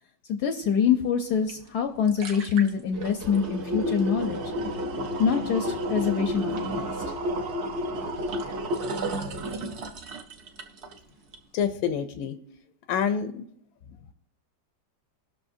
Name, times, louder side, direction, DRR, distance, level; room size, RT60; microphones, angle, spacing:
voice 1, 0.3-4.4 5.2-6.9, left 7 dB, 70° left, 5 dB, 1.0 m, -25 dB
sound 1, 1.5-1.6 1.9-11.0 11.3-11.4, equal, 55° right, 0.8 m, -31 dB
voice 2, 11.5-12.4 12.9-13.4, left 7 dB, 85° left, 9 dB, 1.4 m, -27 dB
19.0 x 6.4 x 2.6 m, 0.71 s
omnidirectional pair, 2.1 m